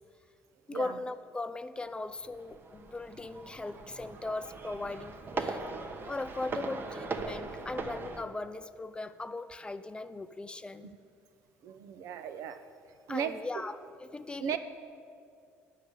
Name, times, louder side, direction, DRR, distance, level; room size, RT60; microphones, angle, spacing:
voice 1, 0.7-5.6 6.1-10.9 13.1-14.6, left 2 dB, 15° left, 12 dB, 0.4 m, -39 dB
sound 1, 2.0-8.2, right 3 dB, 40° right, 0.9 m, -40 dB
voice 2, 11.6-12.6 13.1-13.3 14.4-14.6, right 8 dB, 70° right, 10 dB, 0.7 m, -35 dB
9.1 x 6.5 x 8.2 m, 2.3 s
supercardioid pair, 85°, 6 cm